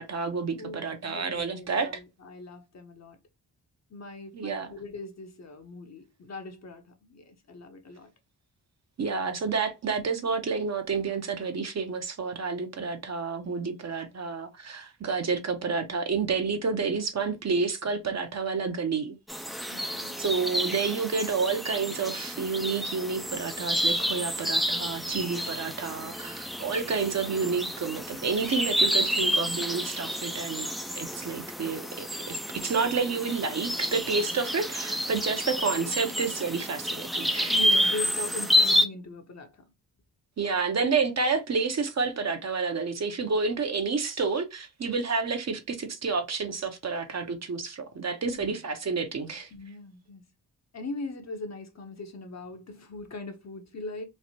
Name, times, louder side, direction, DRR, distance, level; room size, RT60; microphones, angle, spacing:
voice 1, 0.0-1.9 4.3-4.7 9.0-19.2 20.2-30.7 31.0-37.5 40.4-49.5, right 5 dB, 40° right, 0.7 m, -29 dB
voice 2, 0.6-3.2 3.9-8.1 19.7-20.2 37.5-39.6 48.2-48.6 49.5-50.3 50.7-54.0, left 2 dB, 40° left, 0.8 m, -40 dB
sound 1, 19.3-38.9, equal, ahead, 0.4 m, -29 dB
3.2 x 2.1 x 2.8 m
supercardioid pair, 45°, 40 cm